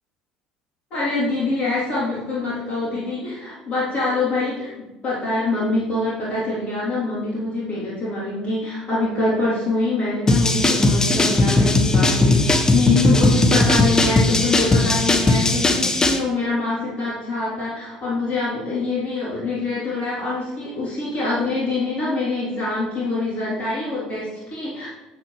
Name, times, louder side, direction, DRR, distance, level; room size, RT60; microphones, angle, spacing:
voice 1, 0.9-4.7 5.0-24.9, left 2 dB, 40° left, -8 dB, 3.2 m, -24 dB
sound 1, 10.3-16.2, left 2 dB, 20° left, 1.0 m, -18 dB
9.6 x 7.9 x 3.2 m, 1.0 s
figure-of-eight pair, 60°, 3 cm